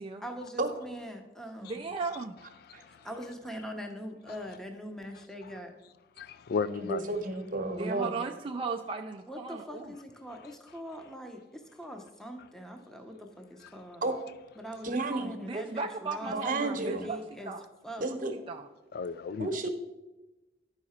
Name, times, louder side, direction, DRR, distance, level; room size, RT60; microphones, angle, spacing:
voice 1, 0.2-1.9 2.9-5.7 9.3-14.0 14.6-14.9 15.2-17.5 17.8-18.1, equal, 5° left, 0.7 m, -42 dB
voice 2, 1.6-2.4 7.7-9.9 14.9-17.2 17.5-17.6 18.5-18.7, right 4 dB, 30° right, 0.3 m, -36 dB
voice 3, 2.6-3.1 5.4-5.5 6.2-7.0 13.6-13.7 18.9-19.7, left 5 dB, 60° left, 0.3 m, -35 dB
voice 4, 6.8-8.1 14.0-14.2 14.8-15.3 16.2-17.1 18.0-18.3 19.4-19.7, right 2 dB, 50° right, 0.9 m, -31 dB
11.0 x 4.8 x 4.2 m
head